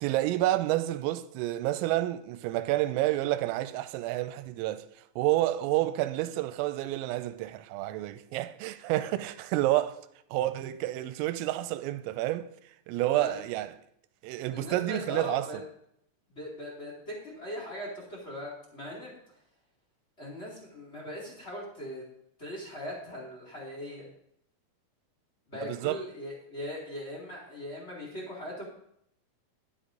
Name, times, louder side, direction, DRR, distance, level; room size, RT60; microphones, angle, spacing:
voice 1, 0.0-4.9 5.2-10.0 10.3-12.5 12.9-13.7 14.2-15.5 25.6-26.0, right 15 dB, 85° right, 3.3 m, -29 dB
voice 2, 13.0-13.4 14.5-15.6 16.3-19.2 20.2-22.0 22.4-24.1 25.5-28.6, left 1 dB, 45° left, 0.8 m, -40 dB
11.5 x 11.0 x 3.8 m
omnidirectional pair, 6.0 m